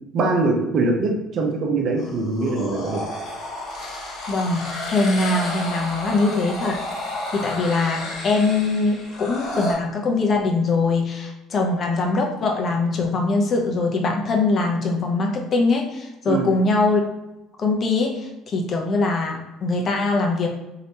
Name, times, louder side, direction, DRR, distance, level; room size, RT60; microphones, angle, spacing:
voice 1, 0.1-3.0 16.3-16.5, right 3 dB, 55° right, 1 dB, 0.8 m, -22 dB
sound 1, 2.0-9.7, left 1 dB, 60° left, 1.1 m, -31 dB
voice 2, 4.3-6.8 7.0-17.0 17.6-20.5, left 3 dB, 45° left, 1 dB, 0.8 m, -22 dB
3.2 x 2.9 x 2.8 m, 0.99 s
hypercardioid pair, 70°, 0 cm